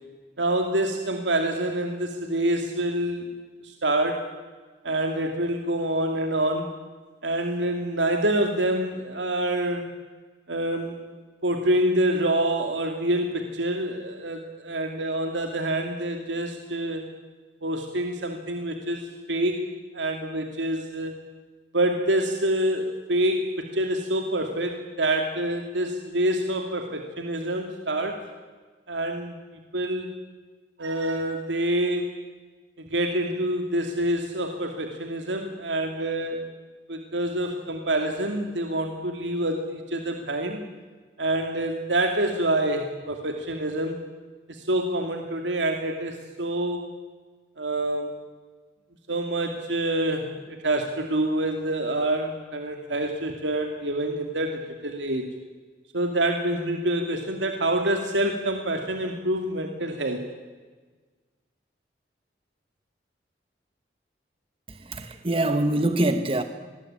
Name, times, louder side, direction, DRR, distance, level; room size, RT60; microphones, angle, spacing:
voice 1, 0.4-3.3 3.6-4.3 4.8-6.8 7.2-9.9 10.5-11.1 11.4-17.0 17.6-19.6 19.9-21.2 21.7-28.2 28.9-30.1 30.8-32.1 32.8-36.4 36.9-40.6 41.2-44.0 44.5-46.8 47.6-48.1 49.1-55.3 55.9-60.2, right 1 dB, 90° right, 4 dB, 2.6 m, -26 dB
voice 2, 64.7-66.4, right 1 dB, 30° right, 8 dB, 1.2 m, -24 dB
26.0 x 21.0 x 8.9 m, 1.4 s
head